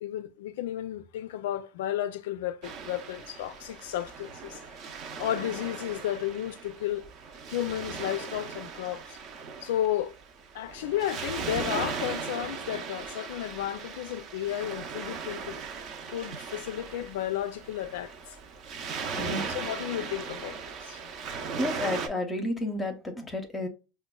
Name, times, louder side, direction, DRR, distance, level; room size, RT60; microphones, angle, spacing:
voice 1, 0.0-7.0 7.5-9.2 9.6-10.1 10.5-15.6 16.1-18.1 19.1-20.6 20.8-21.1, left 12 dB, 80° left, 0.4 m, -33 dB
Waves surf, 2.6-22.1, right 5 dB, 45° right, 0.6 m, -38 dB
voice 2, 19.1-19.4 21.6-23.7, left 1 dB, 15° left, 0.7 m, -31 dB
5.0 x 2.2 x 2.2 m
supercardioid pair, 125°, 0 cm